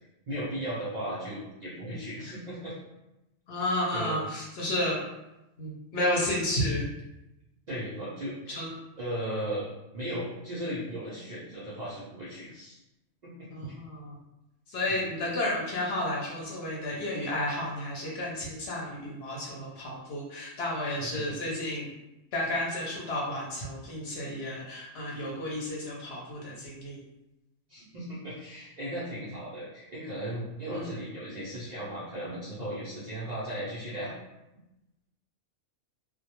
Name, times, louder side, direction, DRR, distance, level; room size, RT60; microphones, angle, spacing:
voice 1, 0.3-2.7 3.9-4.2 7.7-8.6 9.0-9.7 9.9-12.8 13.2-13.5 14.9-15.0 21.0-21.4 27.7-34.1, right 1 dB, 85° right, -8 dB, 0.3 m, -36 dB
voice 2, 3.5-4.9 5.6-6.8 8.5-8.7 13.5-14.1 14.7-21.9 22.3-27.0 30.7-30.9, left 1 dB, 60° left, -4 dB, 0.7 m, -32 dB
2.2 x 2.1 x 2.8 m, 0.95 s
omnidirectional pair, 1.4 m